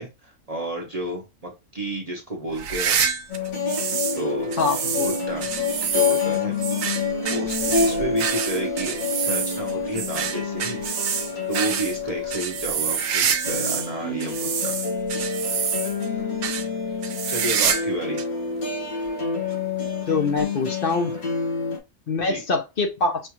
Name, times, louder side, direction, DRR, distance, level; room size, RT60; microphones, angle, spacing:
voice 1, 0.0-3.0 4.1-4.5 5.0-5.5 5.9-6.6 7.3-11.1 11.5-14.8 17.3-18.2 22.1-22.4, right 1 dB, 35° right, -1 dB, 0.7 m, -31 dB
sound 1, 2.5-4.2 4.5-13.9 14.2-16.1 16.4-16.7 17.0-17.9 18.2-18.3 19.1-19.2 20.4-20.5, right 7 dB, 70° right, 1.0 m, -27 dB
sound 2, 3.3-21.8, left 4 dB, 65° left, 1.9 m, -28 dB
voice 2, 4.6-5.1 20.1-21.1 22.1-23.2, left 3 dB, 50° left, 4 dB, 0.7 m, -24 dB
5.4 x 2.4 x 2.9 m, 0.24 s
omnidirectional pair, 1.5 m